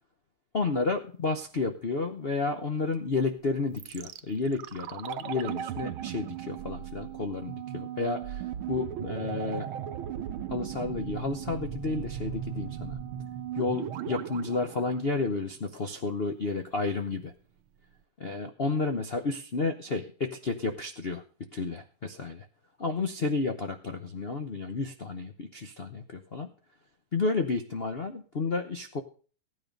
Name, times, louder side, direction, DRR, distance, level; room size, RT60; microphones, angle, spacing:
voice 1, 0.5-9.7 10.5-13.0 13.5-17.3 18.2-21.2 21.5-22.5 22.8-26.5 27.1-29.0, left 3 dB, 60° left, 6 dB, 0.6 m, -31 dB
sound 1, 3.8-15.8 16.0-16.1, right 10 dB, 80° right, 1.7 m, -37 dB
15.0 x 9.7 x 5.2 m, 0.41 s
omnidirectional pair, 2.4 m